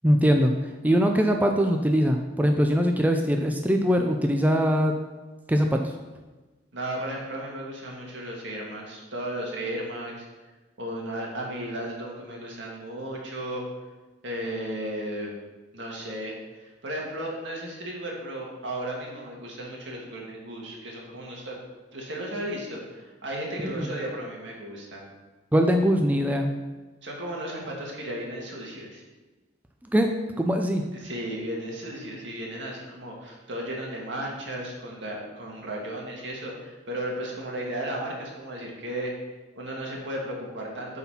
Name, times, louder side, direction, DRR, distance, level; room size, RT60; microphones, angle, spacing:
voice 1, 0.0-0.5 0.8-4.9 5.5-5.8 23.6-23.9 25.5-26.5 29.9-30.1 30.4-30.8, equal, 10° right, 3 dB, 0.4 m, -22 dB
voice 2, 6.7-10.3 10.8-13.6 14.2-15.4 15.7-21.6 21.9-25.1 27.0-29.0 30.9-39.1 39.6-41.0, right 1 dB, 75° right, -2 dB, 2.0 m, -35 dB
8.2 x 4.2 x 5.6 m, 1.2 s
head